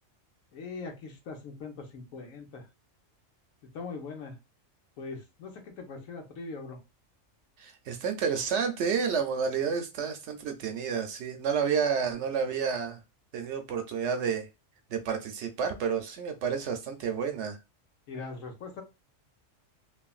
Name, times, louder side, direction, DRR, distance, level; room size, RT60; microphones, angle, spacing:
voice 1, 0.5-2.7 3.6-4.4 5.0-6.8 18.1-18.8, left 4 dB, 90° left, 1.2 m, -41 dB
voice 2, 7.6-13.0 13.3-14.5 14.9-17.6, right 6 dB, 70° right, 0.8 m, -30 dB
3.2 x 2.2 x 2.3 m
omnidirectional pair, 1.4 m